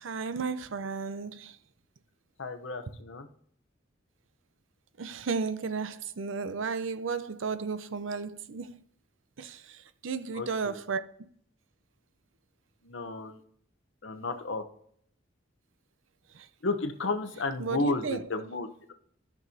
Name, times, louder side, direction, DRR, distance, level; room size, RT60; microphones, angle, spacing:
voice 1, 0.0-1.5 5.0-8.8 9.4-9.6 10.0-11.0 17.6-18.2, right 5 dB, 85° right, 0.6 m, -33 dB
voice 2, 2.4-3.3 10.3-10.8 12.8-13.4 14.0-14.6 16.6-18.9, left 3 dB, 75° left, 0.9 m, -33 dB
13.0 x 6.1 x 2.8 m
head